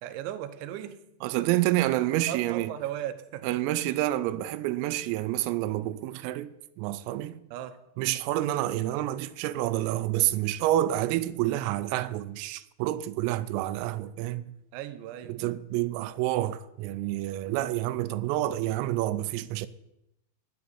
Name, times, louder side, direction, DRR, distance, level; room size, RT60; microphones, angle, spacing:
voice 1, 0.0-1.0 1.4-1.5 2.3-3.6 7.5-7.8 14.7-15.3, right 12 dB, 75° right, 3.0 m, -36 dB
voice 2, 1.2-2.7 3.4-7.4 8.0-14.5 15.3-19.7, right 14 dB, 90° right, 3.3 m, -28 dB
10.5 x 7.9 x 9.8 m
omnidirectional pair, 5.9 m